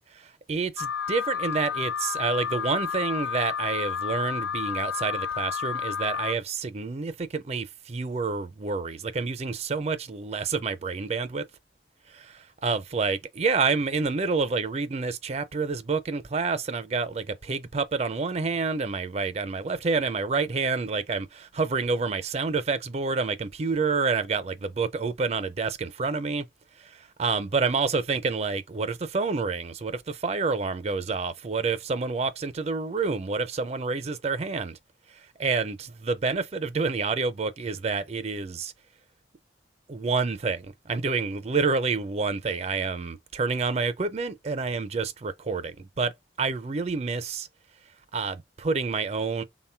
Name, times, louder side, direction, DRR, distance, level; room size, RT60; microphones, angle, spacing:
voice 1, 0.1-11.4 12.1-12.2 12.6-26.5 26.8-34.8 35.4-38.7 39.9-46.1 46.4-47.5 48.1-49.4, right 4 dB, 35° right, 0.4 m, -28 dB
Alarm, 0.8-6.3, left 7 dB, 90° left, 0.3 m, -31 dB
3.7 x 2.2 x 4.3 m
head